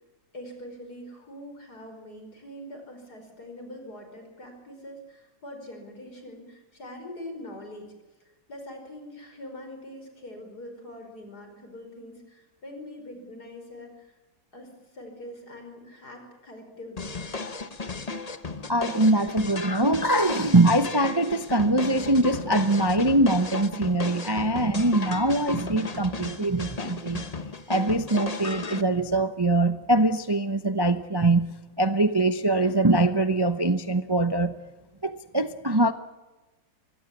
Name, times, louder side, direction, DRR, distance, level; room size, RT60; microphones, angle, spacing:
voice 1, 0.3-7.9 8.5-14.1 14.5-17.2, left 1 dB, 55° left, 5.7 m, -43 dB
sound 1, 17.0-28.8, left 3 dB, 25° left, 1.0 m, -35 dB
voice 2, 18.7-27.2 27.7-34.6 35.0-35.9, right 2 dB, 25° right, 0.5 m, -23 dB
24.5 x 19.5 x 8.5 m
omnidirectional pair, 2.0 m